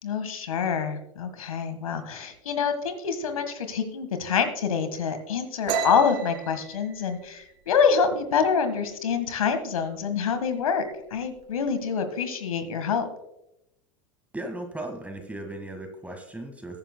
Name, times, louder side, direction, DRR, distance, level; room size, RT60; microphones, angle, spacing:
voice 1, 0.0-10.8 11.1-13.1, left 6 dB, 90° left, 9 dB, 1.6 m, -26 dB
sound 1, 5.7-9.1 9.4-9.8 10.1-10.7 10.9-11.7, right 6 dB, 60° right, 2.3 m, -34 dB
voice 2, 14.3-16.8, right 1 dB, 10° right, 5 dB, 1.7 m, -37 dB
21.0 x 9.0 x 2.2 m, 0.86 s
hypercardioid pair, 95°, 17 cm